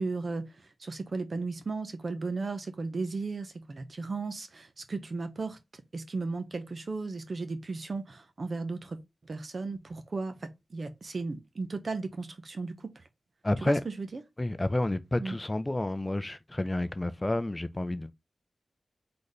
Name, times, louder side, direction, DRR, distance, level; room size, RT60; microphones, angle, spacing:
voice 1, 0.0-13.0 13.6-14.2 15.2-15.4, right 3 dB, 55° right, 0.9 m, -35 dB
voice 2, 13.4-13.8 14.4-18.1, left 1 dB, 20° left, 0.5 m, -30 dB
4.1 x 3.9 x 3.3 m
wide cardioid pair, 80°, 0 cm